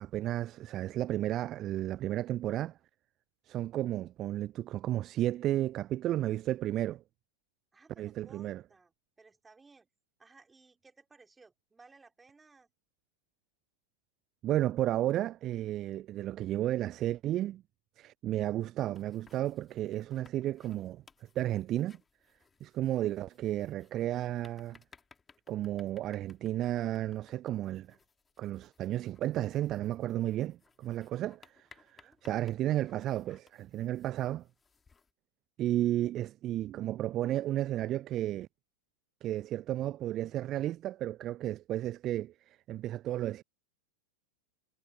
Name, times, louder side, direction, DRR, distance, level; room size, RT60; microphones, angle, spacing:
voice 1, 0.0-2.8 3.5-7.0 8.0-8.6 14.4-17.6 18.0-21.0 21.4-22.0 22.6-24.8 25.5-27.9 28.4-34.4 35.6-38.5 39.2-43.4, right 13 dB, 35° right, 0.3 m, -33 dB
voice 2, 7.7-9.9 10.2-12.7 31.8-32.2, right 4 dB, 10° right, 4.7 m, -60 dB
sound 1, 18.8-35.1, left 5 dB, 15° left, 2.6 m, -64 dB
figure-of-eight pair, 90°, 0 cm